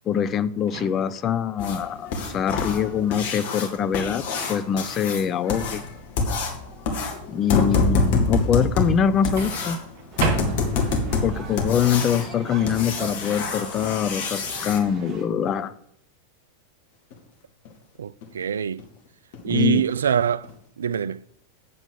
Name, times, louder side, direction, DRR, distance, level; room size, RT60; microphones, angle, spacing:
voice 1, 0.1-4.2 4.5-5.8 7.3-9.8 11.2-15.7 19.5-19.8, left 8 dB, 30° left, 0.5 m, -24 dB
Microwave oven, 0.7-1.3 3.3-3.6 9.4-11.0, right 6 dB, 50° right, 2.3 m, -32 dB
sound 1, 1.6-14.8 17.1-17.2 17.6-17.7 18.2-18.3 18.8-18.9 19.3-19.5 19.9-20.0 20.4-20.5, left 3 dB, 50° left, 2.0 m, -26 dB
sound 2, 10.1-15.2, right 4 dB, 20° right, 3.1 m, -40 dB
voice 2, 18.0-18.8 19.4-20.5 20.8-21.2, right 8 dB, 65° right, 0.3 m, -24 dB
8.1 x 6.9 x 6.9 m
figure-of-eight pair, 90°, 0 cm